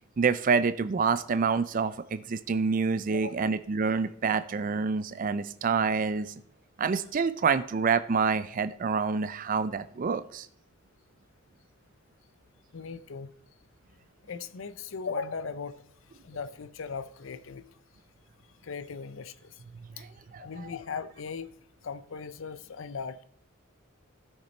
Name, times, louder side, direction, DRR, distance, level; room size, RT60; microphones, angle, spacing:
voice 1, 0.2-6.3 6.8-10.5 20.0-20.1 20.3-20.4, right 5 dB, 40° right, 0.4 m, -27 dB
voice 2, 12.7-13.3 14.3-15.8 16.2-17.7 18.6-19.5 20.0-20.1 20.4-21.5 21.8-23.2, left 5 dB, 70° left, 0.6 m, -38 dB
13.5 x 6.7 x 4.3 m
head